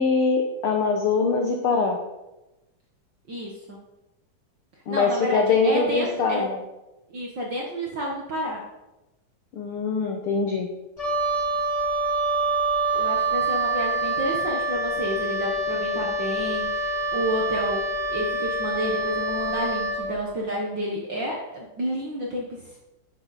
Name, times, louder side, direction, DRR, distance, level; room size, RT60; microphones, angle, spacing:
voice 1, 0.0-2.0 4.9-6.6 9.5-10.7, left 4 dB, 80° left, 3 dB, 1.2 m, -23 dB
voice 2, 3.3-3.8 4.9-6.5 7.1-8.6 13.0-17.8 18.1-22.8, equal, 55° right, -2 dB, 1.3 m, -30 dB
Wind instrument woodwind instrument, 11.0-20.1, right 2 dB, 25° left, 0.8 m, -26 dB
11.5 x 7.5 x 4.1 m, 0.99 s
omnidirectional pair, 3.8 m